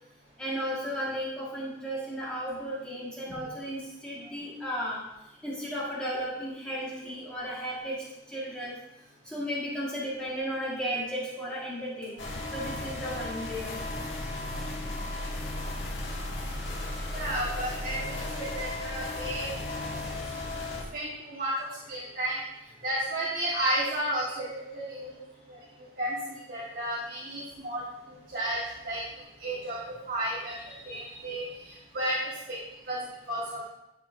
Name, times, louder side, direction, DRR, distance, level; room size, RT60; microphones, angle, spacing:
voice 1, 0.4-5.0 5.4-8.8 9.2-13.9 24.3-24.4, equal, 5° left, -7 dB, 1.5 m, -34 dB
sound 1, 12.2-20.8, left 2 dB, 80° left, 1.6 m, -35 dB
voice 2, 17.1-19.5 20.9-21.5 21.9-22.4 22.8-24.4 24.7-25.2 26.0-27.8 28.3-29.0 29.4-29.8 30.1-30.5 30.8-31.4 31.9-32.2 32.9-33.0 33.3-33.7, right 1 dB, 50° right, -7 dB, 1.5 m, -32 dB
11.0 x 5.7 x 2.6 m, 0.86 s
head